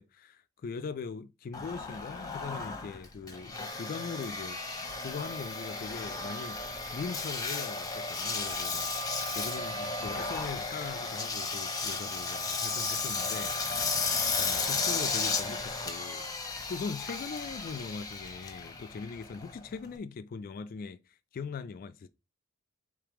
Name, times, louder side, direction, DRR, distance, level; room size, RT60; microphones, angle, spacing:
voice 1, 0.0-4.6 5.0-6.6 6.9-8.9 9.3-13.6 14.4-16.3 16.7-21.0 21.3-22.1, left 5 dB, 40° left, 0.3 m, -40 dB
Engine, 1.5-20.0, left 4 dB, 15° left, 0.8 m, -34 dB
3.4 x 3.3 x 4.7 m
head